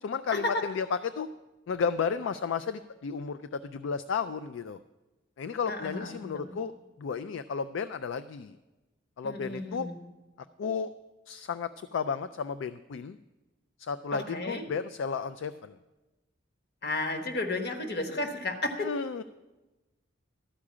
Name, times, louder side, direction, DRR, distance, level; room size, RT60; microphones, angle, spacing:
voice 1, 0.0-1.3 1.7-4.8 5.4-6.7 7.0-8.5 9.2-9.9 10.6-10.9 11.3-13.2 13.8-15.7 18.8-19.2, left 6 dB, 70° left, 12 dB, 0.3 m, -33 dB
voice 2, 5.7-6.5 9.2-10.0 14.1-14.7 16.8-18.9, left 2 dB, 55° left, 3 dB, 1.3 m, -33 dB
13.0 x 4.9 x 8.5 m, 1.1 s
head